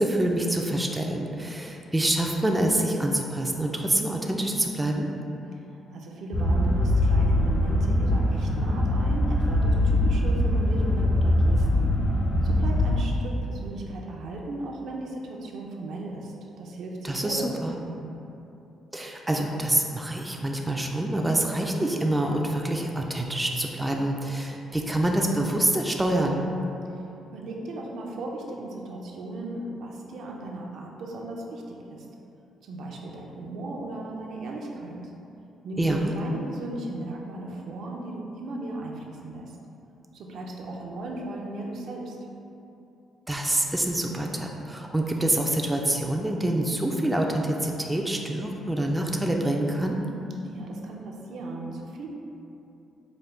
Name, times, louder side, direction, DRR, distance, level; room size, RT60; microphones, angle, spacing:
voice 1, 0.0-5.1 17.0-17.8 18.9-26.4 35.8-36.1 43.3-50.0, right 1 dB, 10° right, 1 dB, 0.3 m, -26 dB
voice 2, 5.5-11.9 12.4-18.1 26.9-27.0 27.3-32.1 32.6-35.1 35.6-39.5 40.1-42.2 50.4-52.1, right 2 dB, 70° right, -1 dB, 0.5 m, -36 dB
sound 1, 6.3-13.0, left 1 dB, 50° left, 1.0 m, -22 dB
4.9 x 2.2 x 3.3 m, 2.8 s
cardioid pair, 90°, 0 cm